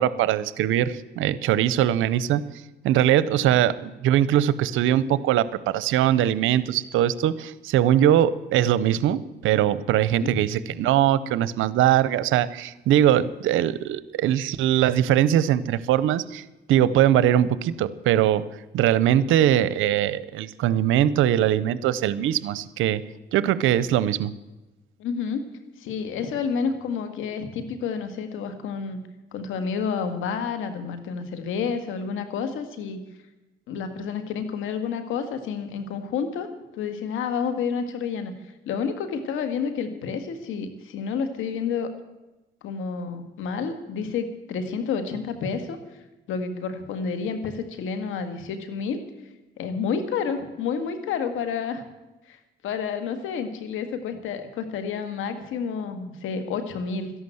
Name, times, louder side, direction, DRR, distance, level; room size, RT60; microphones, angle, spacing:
voice 1, 0.0-2.4 2.8-18.4 18.7-23.0 23.3-24.3, right 11 dB, 90° right, 17 dB, 0.7 m, -21 dB
voice 2, 25.0-25.4 25.8-29.0 29.3-33.0 33.7-36.5 36.7-38.3 38.7-41.9 42.6-45.8 46.3-49.0 49.6-51.8 52.3-52.4 52.6-57.1, left 6 dB, 85° left, 8 dB, 1.9 m, -29 dB
13.5 x 11.0 x 7.9 m, 1.1 s
cardioid pair, 90°, 20 cm